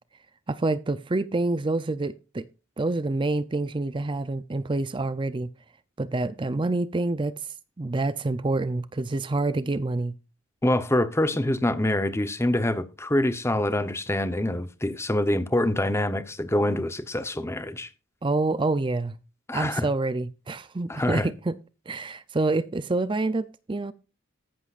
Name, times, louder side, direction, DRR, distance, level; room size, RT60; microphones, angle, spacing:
voice 1, 0.5-2.4 2.8-5.5 6.0-7.3 7.8-10.1 18.2-19.2 19.5-21.5 21.9-23.9, right 2 dB, 25° right, 0.5 m, -27 dB
voice 2, 10.6-17.9 19.5-19.9 20.9-21.3, left 1 dB, 10° left, 0.8 m, -25 dB
14.0 x 11.5 x 2.5 m
head